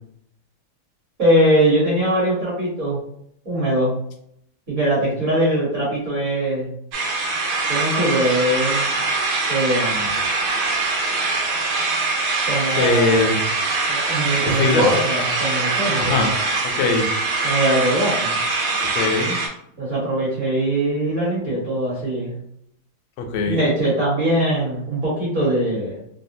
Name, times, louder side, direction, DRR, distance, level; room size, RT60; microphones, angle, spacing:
voice 1, 1.2-3.0 3.4-4.0 4.7-6.7 7.7-8.9 9.5-10.2 12.5-13.1 13.9-16.3 17.4-18.4 19.8-22.3 23.4-26.0, right 1 dB, 40° right, -6 dB, 1.3 m, -21 dB
sound 1, 6.9-19.5, right 3 dB, 75° right, 1.5 m, -23 dB
voice 2, 12.8-13.4 14.4-14.9 16.0-16.3 16.6-17.1 18.9-19.3 23.2-23.7, left 3 dB, 80° left, 4 dB, 1.4 m, -21 dB
3.6 x 2.1 x 2.6 m, 0.71 s
omnidirectional pair, 2.4 m